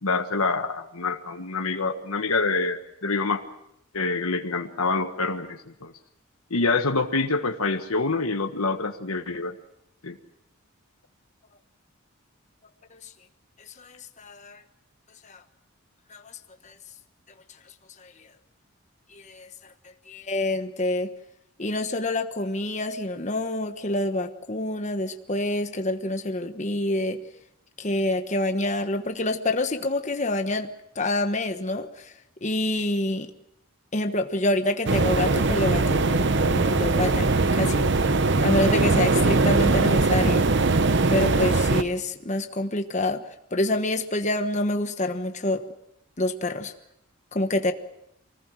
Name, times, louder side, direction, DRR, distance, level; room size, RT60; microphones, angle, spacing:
voice 1, 0.0-3.4 3.9-5.9 6.5-9.5 10.0-10.2, left 3 dB, 85° left, 6 dB, 1.5 m, -26 dB
voice 2, 13.8-14.6 15.2-15.4 16.1-16.3 16.6-16.7 18.0-18.1 19.1-19.5 20.1-21.1 21.6-27.2 27.8-32.1 32.4-33.3 33.9-37.9 38.4-40.5 41.1-43.2 43.5-45.6 46.2-46.7 47.3-47.7, left 1 dB, 35° left, 6 dB, 1.2 m, -27 dB
sound 1, 34.9-41.8, right 3 dB, 55° right, 0.9 m, -21 dB
25.0 x 19.5 x 7.7 m, 0.80 s
head